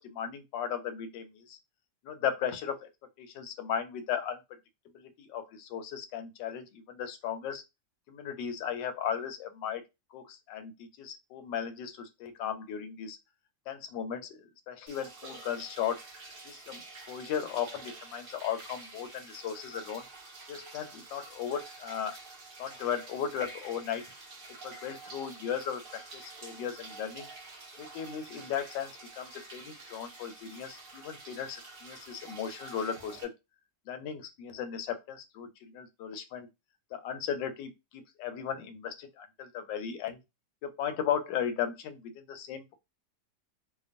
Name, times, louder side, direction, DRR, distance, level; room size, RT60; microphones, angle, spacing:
voice 1, 0.0-1.6 2.0-2.9 3.2-4.4 4.9-7.6 8.1-9.8 10.1-13.2 13.7-16.0 16.4-16.8 17.1-20.0 20.5-22.2 22.6-24.0 24.6-27.3 27.8-33.3 33.9-36.5 36.9-40.2 40.6-42.7, left 8 dB, 85° left, 1.2 m, -36 dB
sound 1, 14.9-33.2, right 3 dB, 80° right, 0.5 m, -48 dB
2.9 x 2.1 x 2.5 m
omnidirectional pair, 1.9 m